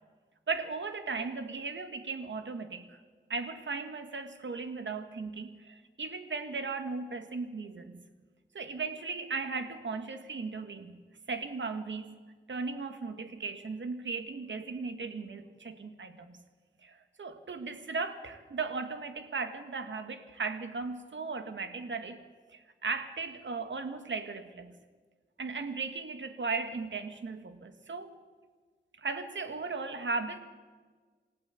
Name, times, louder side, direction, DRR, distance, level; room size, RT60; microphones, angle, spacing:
voice 1, 0.5-3.0 3.3-8.0 8.5-11.0 11.3-12.1 12.5-16.4 16.8-22.2 22.5-24.8 25.4-28.1 29.0-30.4, right 4 dB, 85° right, 8 dB, 1.9 m, -37 dB
28.0 x 16.5 x 8.5 m, 1.5 s
wide cardioid pair, 105°, 19 cm